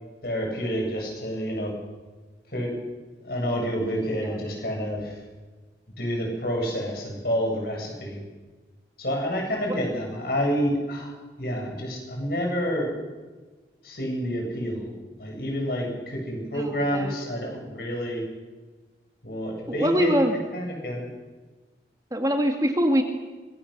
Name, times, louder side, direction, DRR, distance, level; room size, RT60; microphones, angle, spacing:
voice 1, 0.2-1.7 2.5-2.7 3.2-5.2 6.0-8.2 9.0-11.1 11.4-12.9 13.8-14.9 15.2-18.2 19.2-20.3 20.5-21.1, equal, 55° left, 0 dB, 8.0 m, -28 dB
voice 2, 16.5-17.1 19.7-20.3 22.1-23.0, equal, 20° right, 4 dB, 2.1 m, -23 dB
25.0 x 22.0 x 6.8 m, 1.3 s
head